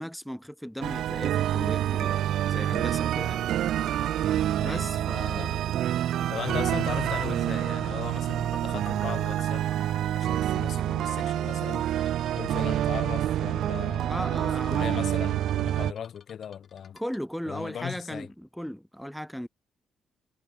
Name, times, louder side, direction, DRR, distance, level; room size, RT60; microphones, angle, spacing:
voice 1, 0.0-3.4 4.6-5.6 14.1-15.0 16.9-19.5, equal, ahead, 0.8 m, -36 dB
sound 1, 0.8-15.9, right 12 dB, 75° right, 0.5 m, -27 dB
sound 2, 4.2-18.3, left 6 dB, 40° left, 6.8 m, -51 dB
voice 2, 4.6-5.5 6.3-9.7 10.1-11.8 12.4-17.0 17.5-18.3, left 8 dB, 60° left, 0.3 m, -38 dB
cardioid pair, 90°, 0 cm